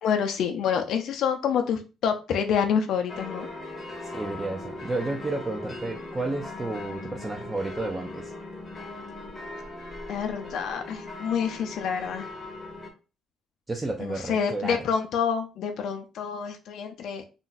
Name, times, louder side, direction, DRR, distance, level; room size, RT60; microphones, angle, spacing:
voice 1, 0.0-3.5 10.1-12.3 14.0-17.3, left 7 dB, 65° left, 6 dB, 0.4 m, -27 dB
sound 1, 3.1-12.9, left 2 dB, 20° left, 0.7 m, -39 dB
voice 2, 4.0-8.3 13.7-14.9, right 2 dB, 15° right, 1 dB, 0.4 m, -32 dB
2.5 x 2.1 x 3.8 m, 0.31 s
cardioid pair, 150°, 0 cm